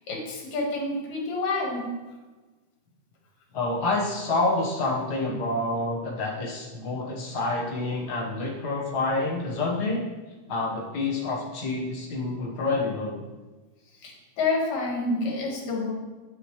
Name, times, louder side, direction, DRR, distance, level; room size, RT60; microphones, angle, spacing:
voice 1, 0.1-1.8 14.0-15.9, left 3 dB, 70° left, -2 dB, 3.0 m, -28 dB
voice 2, 3.5-10.0 10.5-13.2, left 2 dB, 45° left, -2 dB, 1.5 m, -28 dB
8.6 x 8.2 x 3.2 m, 1.2 s
omnidirectional pair, 3.3 m